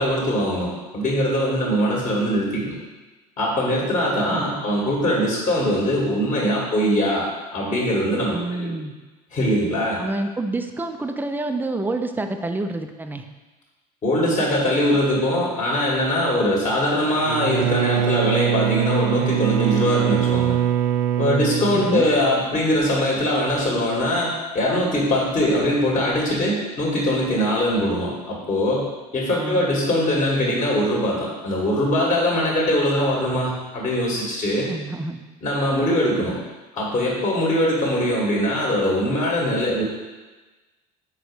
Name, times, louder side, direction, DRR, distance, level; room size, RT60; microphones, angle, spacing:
voice 1, 0.0-2.8 3.4-8.7 9.3-10.0 14.0-20.6 21.2-34.7 35.4-36.4 36.7-39.8, equal, 35° left, -4 dB, 2.1 m, -22 dB
voice 2, 4.3-4.6 8.3-8.9 10.0-13.3 21.7-22.1 29.3-29.6 34.7-35.2, right 2 dB, 10° right, 6 dB, 0.6 m, -28 dB
Bowed string instrument, 17.2-22.5, right 10 dB, 65° right, 0.4 m, -23 dB
6.0 x 5.0 x 4.9 m, 1.2 s
figure-of-eight pair, 65°, 21 cm